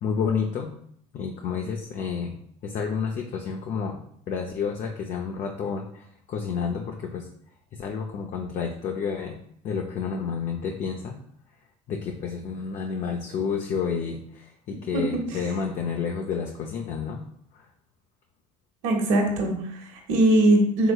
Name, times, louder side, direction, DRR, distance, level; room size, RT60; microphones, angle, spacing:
voice 1, 0.0-0.7 1.1-2.3 2.6-4.0 4.3-7.3 7.7-9.4 9.6-11.1 11.9-17.2 17.5-17.7, left 6 dB, 50° left, 2 dB, 0.6 m, -30 dB
voice 2, 18.8-20.9, right 1 dB, 80° right, 0 dB, 1.0 m, -21 dB
4.8 x 3.5 x 2.3 m, 0.66 s
hypercardioid pair, 80°, 17 cm